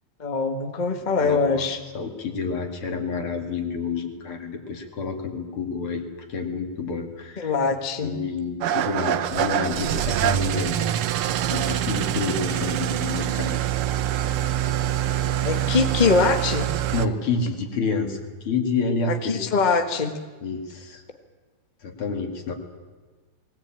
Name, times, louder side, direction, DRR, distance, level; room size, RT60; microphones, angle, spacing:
voice 1, 0.2-1.8 7.4-8.1 15.4-16.7 19.2-20.1, left 4 dB, 80° left, 7 dB, 0.4 m, -22 dB
voice 2, 1.2-1.7 1.9-7.5 8.0-11.1 11.5-13.6 16.9-19.5 20.4-21.0 21.8-22.5, left 4 dB, 50° left, 4 dB, 3.0 m, -29 dB
Engine starting / Idling, 8.6-17.1, right 11 dB, 75° right, 1.3 m, -25 dB
20.0 x 18.5 x 8.9 m, 1.4 s
omnidirectional pair, 3.4 m